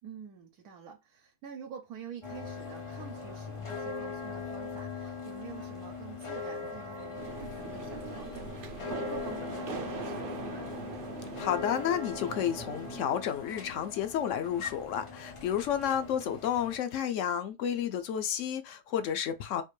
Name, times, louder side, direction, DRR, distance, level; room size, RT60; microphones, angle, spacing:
voice 1, 0.0-10.7, right 7 dB, 75° right, 1.2 m, -47 dB
sound 1, 2.2-16.8, left 5 dB, 35° left, 0.5 m, -41 dB
sound 2, 7.2-13.0, right 5 dB, 55° right, 0.6 m, -41 dB
voice 2, 11.4-19.6, left 9 dB, 65° left, 0.8 m, -31 dB
4.4 x 2.5 x 3.1 m
omnidirectional pair, 1.6 m